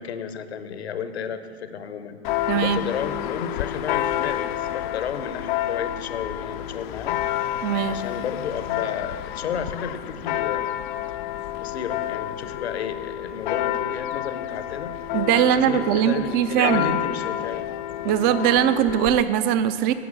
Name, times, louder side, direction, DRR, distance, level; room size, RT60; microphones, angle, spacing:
voice 1, 0.0-2.2 2.6-7.2 7.8-10.8 11.5-14.9 15.4-17.7, left 7 dB, 75° left, 11 dB, 0.8 m, -32 dB
Church bell, 2.2-19.2, left 12 dB, 50° left, 0.4 m, -29 dB
voice 2, 2.5-2.8 7.6-8.0 15.1-17.0 18.0-19.9, right 10 dB, 30° right, 13 dB, 0.5 m, -21 dB
11.0 x 6.0 x 7.2 m, 2.6 s
figure-of-eight pair, 100°, 33 cm